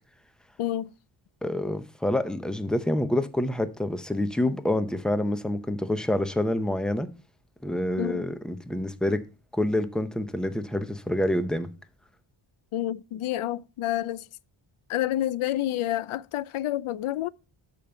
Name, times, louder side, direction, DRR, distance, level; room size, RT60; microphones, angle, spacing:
voice 1, 0.6-0.9 8.0-8.2 12.7-14.2 14.9-17.3, left 13 dB, 80° left, 0.6 m, -29 dB
voice 2, 1.4-7.1 7.6-9.2 9.5-11.7, left 1 dB, ahead, 0.7 m, -27 dB
12.5 x 5.2 x 4.4 m
wide cardioid pair, 150°, 49 cm